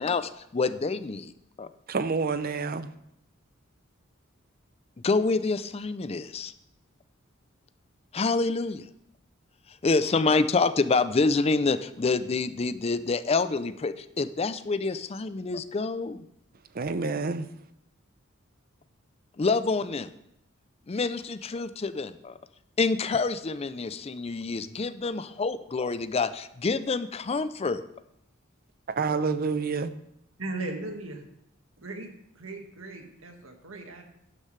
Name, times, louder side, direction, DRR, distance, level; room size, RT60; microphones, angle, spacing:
voice 1, 0.0-1.3 1.6-1.7 5.0-6.5 8.1-8.8 9.8-16.2 19.4-20.1 20.9-22.4 22.8-27.8, left 3 dB, 30° left, 13 dB, 0.5 m, -27 dB
voice 2, 1.9-2.9 16.7-17.5 29.0-29.9, right 4 dB, 45° right, 13 dB, 0.6 m, -28 dB
voice 3, 30.4-31.2 31.8-32.1 32.4-34.0, right 2 dB, 75° right, 3 dB, 1.8 m, -37 dB
12.5 x 9.9 x 3.3 m, 0.79 s
head